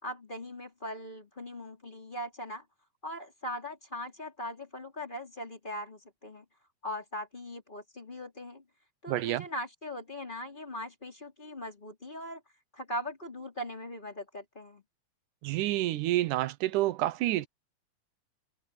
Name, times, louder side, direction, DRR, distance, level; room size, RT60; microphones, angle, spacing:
voice 1, 0.0-2.6 3.0-6.4 6.8-8.6 9.0-12.4 12.7-14.8, left 1 dB, 15° left, 3.9 m, -40 dB
voice 2, 9.1-9.5 15.4-17.5, right 15 dB, 85° right, 2.3 m, -28 dB
omnidirectional pair, 3.5 m